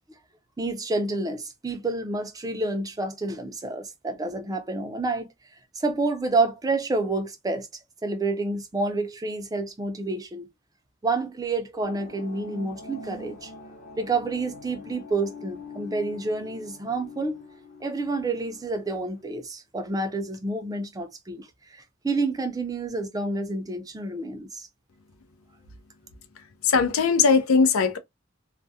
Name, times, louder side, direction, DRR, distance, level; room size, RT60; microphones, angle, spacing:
voice 1, 0.6-5.3 5.7-7.7 8.0-10.5 11.0-13.5 14.0-17.4 17.8-24.7, right 3 dB, 15° right, 0.4 m, -29 dB
sound 1, 11.8-19.2, left 3 dB, 40° left, 0.8 m, -44 dB
voice 2, 26.6-28.0, left 5 dB, 75° left, 0.5 m, -19 dB
2.3 x 2.0 x 2.6 m
head